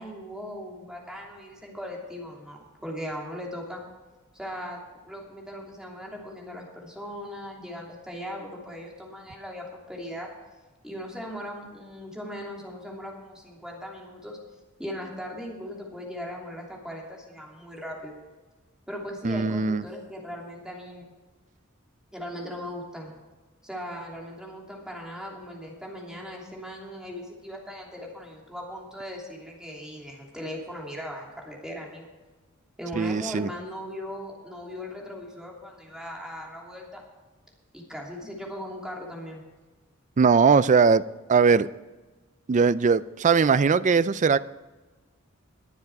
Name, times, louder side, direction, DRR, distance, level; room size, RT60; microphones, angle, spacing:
voice 1, 0.0-3.8 4.3-10.3 10.8-14.4 14.8-18.2 18.9-21.1 22.1-23.1 23.6-32.1 32.8-37.0 37.7-39.4, equal, 5° right, -2 dB, 2.9 m, -38 dB
voice 2, 19.2-19.8 33.0-33.5 40.2-41.0 41.3-41.7 42.5-44.4, right 5 dB, 35° right, 17 dB, 0.4 m, -20 dB
21.5 x 7.3 x 4.7 m, 1.2 s
head